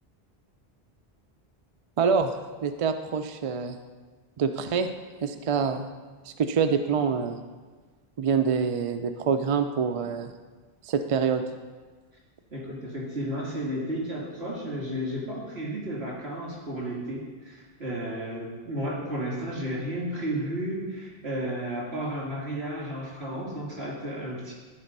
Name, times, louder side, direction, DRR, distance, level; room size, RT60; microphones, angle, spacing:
voice 1, 2.0-2.3 2.6-3.8 4.4-4.9 5.2-5.9 6.3-7.4 8.2-10.3 10.8-11.4, right 6 dB, 55° right, 8 dB, 0.4 m, -26 dB
voice 2, 12.5-24.5, right 1 dB, 80° right, -5 dB, 3.0 m, -33 dB
12.0 x 4.4 x 5.3 m, 1.4 s
omnidirectional pair, 1.0 m